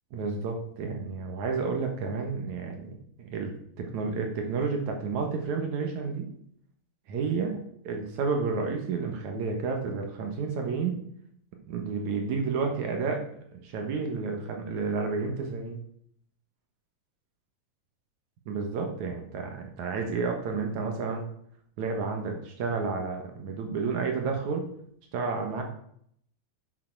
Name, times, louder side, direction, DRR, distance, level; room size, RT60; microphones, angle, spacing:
voice 1, 0.1-2.9 3.2-6.3 7.1-7.6 7.8-11.0 11.7-13.3 13.5-15.8 18.5-21.2 21.8-24.7 25.1-25.6, right 4 dB, 65° right, 3 dB, 2.5 m, -31 dB
11.5 x 6.8 x 4.6 m, 0.67 s
omnidirectional pair, 4.0 m